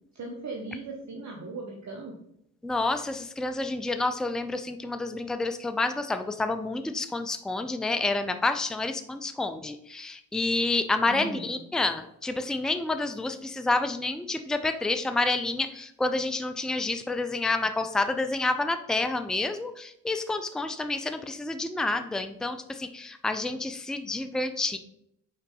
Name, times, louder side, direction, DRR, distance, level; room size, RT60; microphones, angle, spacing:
voice 1, 0.1-2.1 11.0-11.5, right 3 dB, 45° right, 0 dB, 1.2 m, -38 dB
voice 2, 2.6-24.8, left 2 dB, ahead, 8 dB, 0.6 m, -29 dB
5.4 x 4.6 x 4.0 m, 0.75 s
hypercardioid pair, 40°, 38 cm